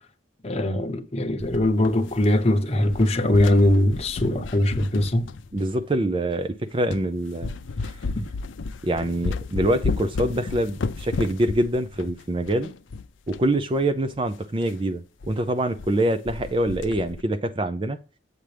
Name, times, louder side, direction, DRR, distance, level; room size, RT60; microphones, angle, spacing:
voice 1, 0.4-5.3, left 1 dB, 30° left, 1.0 m, -21 dB
sound 1, 1.4-2.5 2.8-5.8 6.4-6.5 6.9-7.1 7.4-13.5 13.8-13.9 14.1-14.2 14.6-14.8 15.2-15.3 15.6-16.0 16.3-17.2, left 4 dB, 80° left, 0.5 m, -33 dB
voice 2, 5.5-7.5 8.8-12.7 13.3-18.0, right 1 dB, 25° right, 0.5 m, -25 dB
8.1 x 7.3 x 3.3 m
head